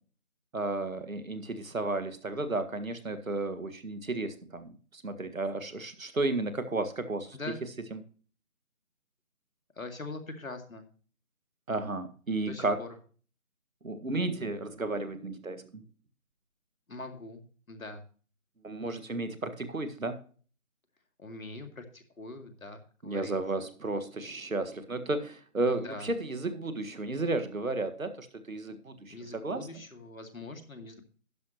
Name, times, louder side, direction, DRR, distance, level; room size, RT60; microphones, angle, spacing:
voice 1, 0.5-7.4 7.9-8.0 11.7-12.8 13.8-15.8 18.6-20.2 23.0-29.7, right 2 dB, 75° right, 9 dB, 1.8 m, -33 dB
voice 2, 9.8-10.9 12.5-12.9 16.9-17.4 17.7-18.0 21.2-23.6 25.7-26.1 29.1-31.0, left 2 dB, 75° left, 6 dB, 2.3 m, -43 dB
11.5 x 10.0 x 3.0 m, 0.41 s
figure-of-eight pair, 180°, 41 cm